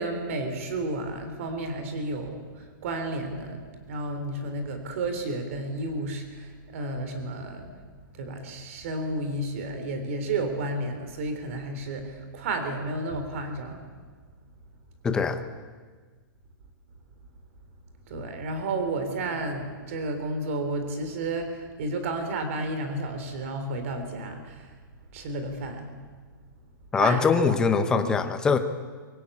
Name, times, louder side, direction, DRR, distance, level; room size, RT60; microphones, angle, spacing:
voice 1, 0.0-7.8 8.1-13.8 18.1-24.7 25.1-26.0 27.0-28.1, right 2 dB, 40° right, 7 dB, 3.7 m, -32 dB
voice 2, 15.0-15.4 26.9-28.6, left 5 dB, 5° left, 8 dB, 0.8 m, -22 dB
24.5 x 20.0 x 8.5 m, 1.5 s
hypercardioid pair, 180°, 12 cm